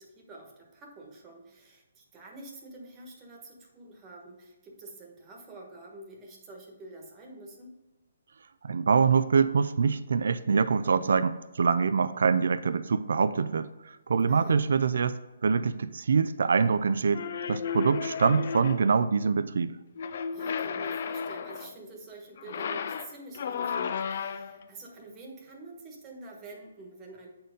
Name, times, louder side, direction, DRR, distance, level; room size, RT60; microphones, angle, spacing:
voice 1, 0.0-7.7 14.3-14.6 20.3-27.3, right 2 dB, 15° right, 0 dB, 1.3 m, -47 dB
voice 2, 8.6-19.8, right 5 dB, 70° right, 12 dB, 0.4 m, -25 dB
sound 1, 17.1-19.0 20.0-21.8 22.4-24.6, left 6 dB, 50° left, 0.4 m, -33 dB
7.8 x 4.4 x 5.0 m, 1.1 s
hypercardioid pair, 160°, 0 cm